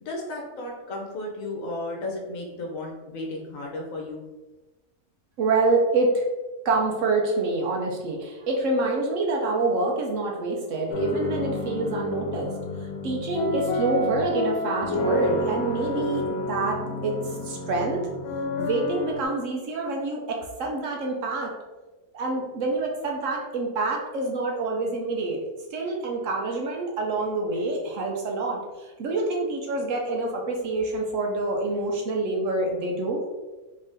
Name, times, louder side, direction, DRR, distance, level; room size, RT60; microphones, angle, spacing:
voice 1, 0.0-4.2, left 2 dB, 70° left, 0 dB, 1.1 m, -34 dB
voice 2, 5.4-6.3 6.6-12.5 12.8-18.0 18.6-21.5 22.1-25.4 25.7-33.2, right 2 dB, 65° right, 0 dB, 0.9 m, -27 dB
sound 1, 10.9-19.2, left 1 dB, 90° left, 1.1 m, -29 dB
3.2 x 2.7 x 3.6 m, 1.1 s
omnidirectional pair, 1.6 m